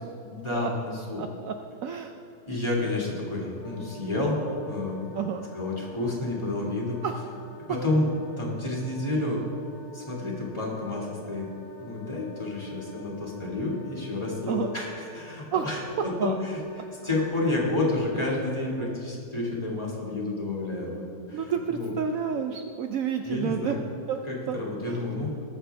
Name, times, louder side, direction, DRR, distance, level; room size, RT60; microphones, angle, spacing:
voice 1, 0.2-1.2 2.5-5.2 5.5-7.0 7.7-8.1 8.4-9.4 9.9-11.5 11.8-21.9 23.2-23.8 24.3-25.3, left 2 dB, 15° left, -4 dB, 1.8 m, -30 dB
voice 2, 1.1-1.5 1.8-2.2 5.1-5.4 7.0-7.2 14.5-14.7 15.5-15.6 16.2-16.4 21.3-23.7 24.1-24.2 24.5-24.6 24.8-25.0, right 7 dB, 85° right, 5 dB, 0.7 m, -29 dB
Wind instrument woodwind instrument, 3.6-18.8, left 3 dB, 45° right, 3.4 m, -51 dB
20.0 x 6.8 x 3.4 m, 2.5 s
omnidirectional pair, 2.0 m